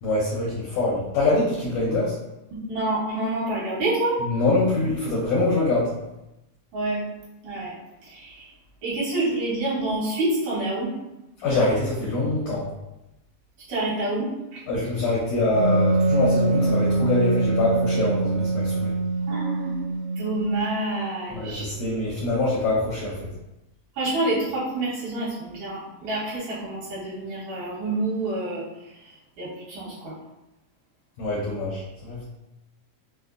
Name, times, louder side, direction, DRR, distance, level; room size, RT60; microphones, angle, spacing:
voice 1, 0.0-2.1 4.2-5.9 11.4-12.6 14.7-18.9 21.3-23.1 31.2-32.3, left 2 dB, 75° left, -6 dB, 1.7 m, -24 dB
voice 2, 2.7-4.2 6.7-7.1 7.4-7.7 8.0-8.5 8.8-10.9 13.7-14.6 19.3-19.7 20.2-21.7 23.9-28.6 29.0-30.1, right 2 dB, 70° right, -8 dB, 2.5 m, -27 dB
Wind instrument woodwind instrument, 15.5-20.9, right 2 dB, 85° right, 2.4 m, -24 dB
5.3 x 2.1 x 2.4 m, 0.93 s
omnidirectional pair, 3.9 m